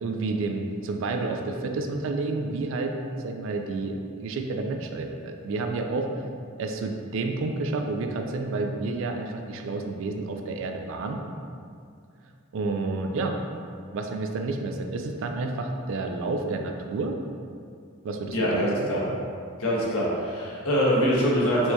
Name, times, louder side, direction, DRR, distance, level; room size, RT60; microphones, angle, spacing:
voice 1, 0.0-2.9 3.2-4.0 4.2-6.1 6.6-11.2 12.5-13.3 13.9-17.2 18.0-18.9, right 3 dB, 65° right, 4 dB, 0.3 m, -30 dB
voice 2, 18.3-19.0 19.6-21.7, equal, 90° left, -5 dB, 0.9 m, -24 dB
4.5 x 2.2 x 2.8 m, 2.3 s
head